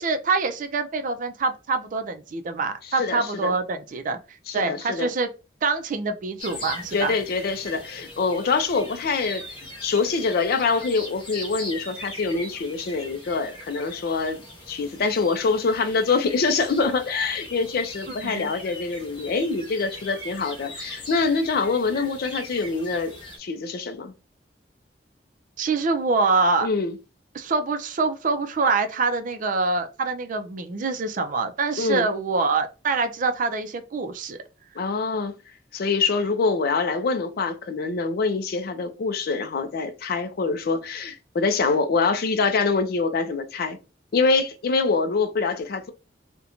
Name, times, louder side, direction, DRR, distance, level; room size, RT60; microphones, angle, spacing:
voice 1, 0.0-4.2 4.5-5.3 5.6-7.1 18.1-18.5 25.6-26.7 27.3-34.4, right 4 dB, 45° right, 0.4 m, -25 dB
voice 2, 3.0-3.5 4.5-5.1 6.9-9.4 9.8-24.1 26.6-27.0 31.8-32.1 34.8-35.3 35.7-43.8 44.1-45.9, left 4 dB, 55° left, 0.4 m, -25 dB
sound 1, 6.4-23.4, left 1 dB, 30° left, 0.9 m, -40 dB
2.5 x 2.1 x 2.8 m
head